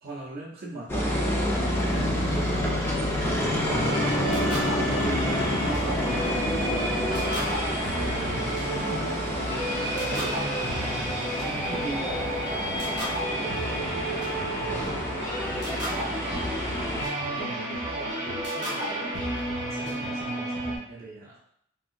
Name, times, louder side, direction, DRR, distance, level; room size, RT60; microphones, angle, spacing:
voice 1, 0.0-1.3 1.8-3.4 3.6-7.1 7.6-8.5 9.8-12.8 13.3-13.7 19.7-21.4, right 2 dB, 50° right, -4 dB, 0.6 m, -40 dB
sound 1, 0.9-17.1, equal, 10° left, 0.6 m, -29 dB
sound 2, 1.8-11.9 12.2-13.0, left 3 dB, 70° left, 0.6 m, -38 dB
voice 2, 2.3-2.7 4.1-5.1 10.6-11.1 11.8-12.7 13.7-15.0 15.5-16.3 16.9-20.3 21.2-21.4, equal, 15° right, -6 dB, 0.9 m, -42 dB
sound 3, 3.7-20.8, right 1 dB, 55° left, 1.1 m, -31 dB
3.4 x 2.8 x 2.4 m, 0.70 s
head